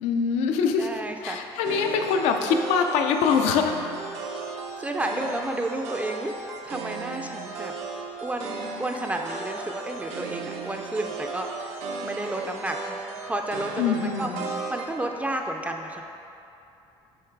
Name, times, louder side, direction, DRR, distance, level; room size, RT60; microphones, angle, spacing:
voice 1, 0.0-3.8 13.8-14.5, left 6 dB, 85° left, 5 dB, 0.5 m, -24 dB
voice 2, 0.8-1.4 4.8-6.4 6.6-7.7 8.2-14.3 14.7-16.0, right 1 dB, 15° right, 3 dB, 0.3 m, -31 dB
sound 1, 1.6-14.9, right 4 dB, 85° right, 0.7 m, -36 dB
7.2 x 3.2 x 4.5 m, 2.8 s
cardioid pair, 115°, 11 cm